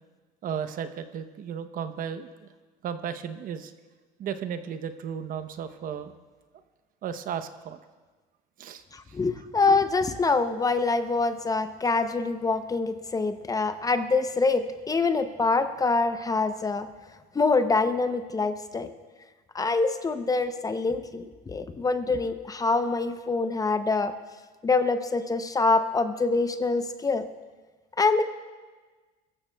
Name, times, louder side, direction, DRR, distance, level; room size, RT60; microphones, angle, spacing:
voice 1, 0.4-2.5 2.8-3.7 4.2-6.1 7.0-7.8 8.6-8.8, right 8 dB, 45° right, 10 dB, 0.8 m, -34 dB
voice 2, 8.9-16.9 17.3-18.9 19.5-24.1 24.6-27.3 28.0-28.2, left 3 dB, 20° left, 9 dB, 0.6 m, -25 dB
21.5 x 14.0 x 2.3 m, 1.3 s
supercardioid pair, 110°, 19 cm